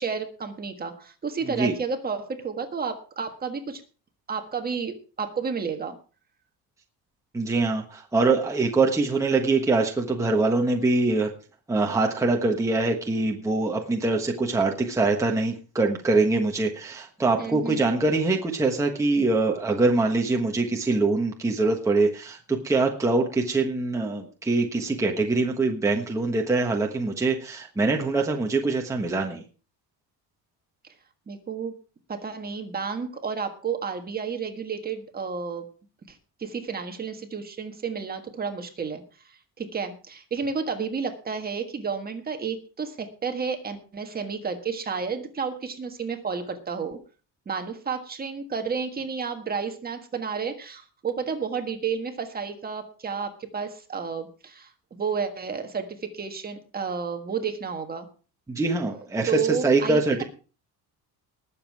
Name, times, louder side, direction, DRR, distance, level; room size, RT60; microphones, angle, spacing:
voice 1, 0.0-3.8 4.3-6.0 17.4-17.9 31.3-31.7 32.1-35.6 36.1-47.0 47.4-58.1 59.3-60.2, right 6 dB, 25° right, 5 dB, 1.5 m, -31 dB
voice 2, 7.3-11.3 11.7-29.4 58.5-60.2, right 3 dB, 10° right, 1 dB, 1.3 m, -24 dB
20.0 x 7.5 x 4.7 m, 0.37 s
cardioid pair, 175°, 40 cm